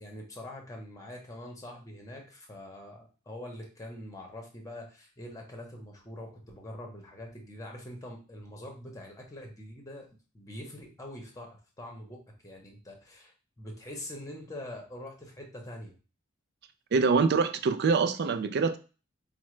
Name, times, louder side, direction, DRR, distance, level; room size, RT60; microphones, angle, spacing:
voice 1, 0.0-10.1 10.3-16.0, left 1 dB, 15° left, 1 dB, 0.8 m, -44 dB
voice 2, 16.9-18.8, right 4 dB, 50° right, 8 dB, 0.4 m, -24 dB
4.8 x 2.1 x 3.1 m, 0.34 s
head